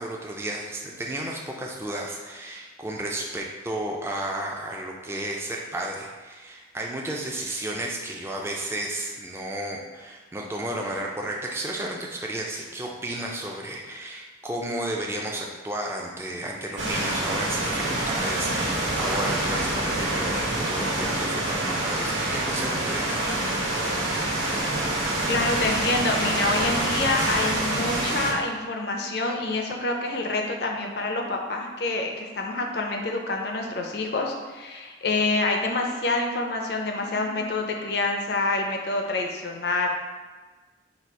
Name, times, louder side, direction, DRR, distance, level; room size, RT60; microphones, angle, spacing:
voice 1, 0.0-23.4, right 1 dB, 15° right, -1 dB, 0.4 m, -33 dB
sound 1, 16.8-28.3, right 1 dB, 75° right, 0.9 m, -26 dB
voice 2, 25.3-39.9, left 2 dB, 55° left, 2 dB, 0.5 m, -27 dB
4.1 x 2.4 x 4.6 m, 1.3 s
head